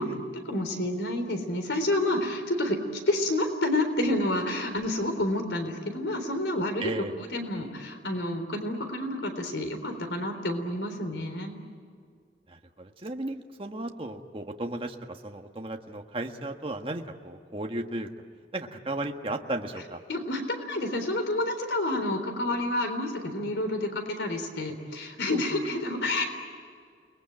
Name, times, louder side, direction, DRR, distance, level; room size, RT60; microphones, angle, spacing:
voice 1, 0.3-11.6 20.1-26.2, left 1 dB, 80° left, 6 dB, 3.8 m, -29 dB
voice 2, 6.8-7.1 12.5-18.1 18.5-20.0 25.3-25.6, right 2 dB, 30° right, 3 dB, 1.5 m, -35 dB
29.5 x 21.0 x 8.9 m, 2.1 s
head